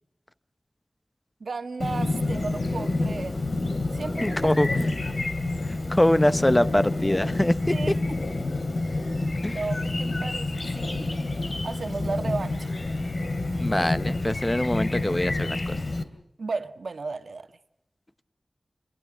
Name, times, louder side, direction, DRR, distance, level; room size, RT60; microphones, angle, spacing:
voice 1, 1.4-3.4 3.9-5.2 7.7-8.0 9.4-11.1 11.6-12.8 16.4-17.5, right 4 dB, 85° right, 8 dB, 1.6 m, -34 dB
Chirp tweet, 1.8-16.0, left 2 dB, 60° left, 2.8 m, -28 dB
voice 2, 4.2-4.7 5.6-7.9 9.4-9.6 13.6-15.8, left 1 dB, 20° left, 13 dB, 0.9 m, -24 dB
27.5 x 22.5 x 6.2 m, 0.81 s
wide cardioid pair, 75°, 0 cm